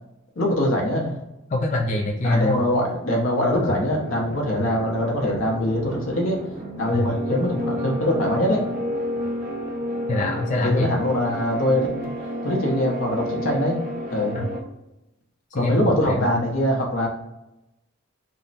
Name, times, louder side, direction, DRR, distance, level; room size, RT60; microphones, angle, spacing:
voice 1, 0.4-1.1 2.2-6.4 6.8-8.6 10.6-11.9 12.4-13.8 14.1-14.4 15.5-17.1, left 1 dB, 75° left, -1 dB, 1.0 m, -23 dB
voice 2, 1.5-2.7 3.5-3.8 6.9-7.1 10.1-10.9 14.3-14.5 15.5-16.3, left 1 dB, 35° left, -2 dB, 0.4 m, -24 dB
sound 1, 3.7-14.6, equal, 40° right, 0.7 m, -31 dB
3.6 x 2.1 x 4.0 m, 0.92 s
head